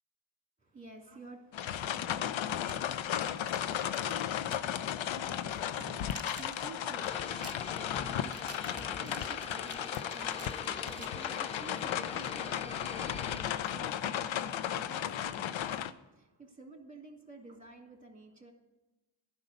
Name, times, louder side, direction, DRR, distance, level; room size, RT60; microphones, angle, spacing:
voice 1, 0.6-2.0 5.7-18.5, right 2 dB, 15° right, 2 dB, 2.7 m, -52 dB
sound 1, 1.5-15.9, left 10 dB, 80° left, 0.6 m, -35 dB
sound 2, 2.5-4.7 5.0-5.2 5.6-11.6, right 4 dB, 30° right, 1.2 m, -52 dB
sound 3, 7.0-13.4, left 3 dB, 15° left, 0.4 m, -46 dB
11.0 x 5.4 x 8.0 m, 1.1 s
cardioid pair, 45°, 46 cm